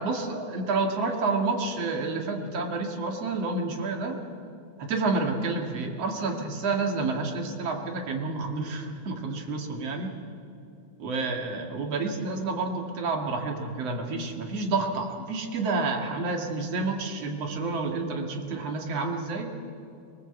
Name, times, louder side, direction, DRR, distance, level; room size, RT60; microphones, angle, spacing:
voice 1, 0.0-4.2 4.8-10.1 11.0-19.5, right 3 dB, 55° right, 2 dB, 2.9 m, -29 dB
24.0 x 19.5 x 7.9 m, 2.5 s
omnidirectional pair, 3.6 m